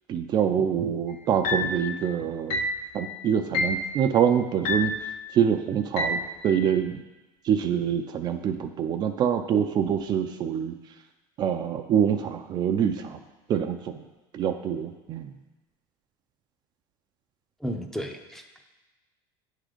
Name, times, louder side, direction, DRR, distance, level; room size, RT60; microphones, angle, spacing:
voice 1, 0.1-2.6 2.9-4.9 5.3-7.0 7.4-10.7 11.4-13.2 13.5-14.0 14.3-15.3, right 8 dB, 40° right, 6 dB, 0.4 m, -25 dB
sound 1, 1.4-1.8 2.5-2.8 3.5-3.9 4.6-5.0 6.0-6.3, left 2 dB, 60° left, 0.8 m, -27 dB
voice 2, 17.6-18.6, equal, 5° left, 4 dB, 0.6 m, -34 dB
8.6 x 3.8 x 5.0 m, 1.1 s
supercardioid pair, 120°, 11 cm